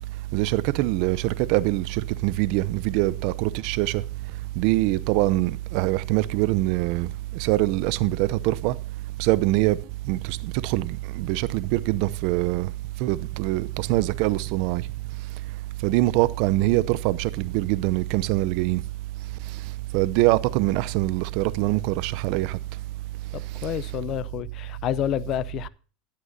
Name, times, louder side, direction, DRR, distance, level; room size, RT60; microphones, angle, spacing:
voice 1, 0.3-4.0 4.6-8.7 9.2-9.8 10.1-12.7 13.0-14.8 15.8-18.8 19.9-22.6, right 17 dB, 60° right, 0.7 m, -24 dB
voice 2, 23.3-25.7, left 12 dB, 50° left, 0.6 m, -29 dB
15.5 x 11.5 x 2.8 m
hypercardioid pair, 95°, 0 cm